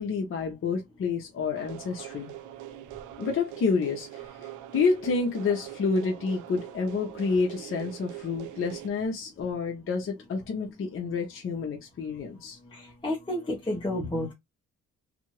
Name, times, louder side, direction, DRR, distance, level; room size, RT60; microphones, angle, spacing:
voice 1, 0.0-2.3 3.2-12.6, left 4 dB, 45° left, 0.8 m, -29 dB
sound 1, 1.5-8.9, right 13 dB, 85° right, 0.5 m, -42 dB
voice 2, 12.7-14.3, left 1 dB, 15° left, 1.0 m, -31 dB
2.8 x 2.5 x 3.0 m
cardioid pair, 90°, 30 cm